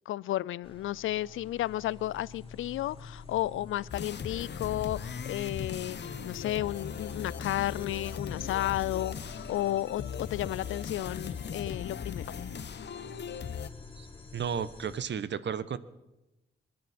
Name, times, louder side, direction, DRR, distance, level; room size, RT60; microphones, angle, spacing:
voice 1, 0.1-12.4, left 14 dB, 80° left, 0.4 m, -33 dB
sound 1, 0.6-15.0, left 4 dB, 25° left, 3.2 m, -48 dB
sound 2, 3.3-3.5 3.8-10.1, right 2 dB, 45° right, 2.9 m, -59 dB
sound 3, 3.9-13.7, left 7 dB, 55° left, 1.0 m, -39 dB
voice 2, 14.3-15.8, right 7 dB, 60° right, 1.0 m, -33 dB
28.0 x 10.5 x 4.3 m
supercardioid pair, 50°, 21 cm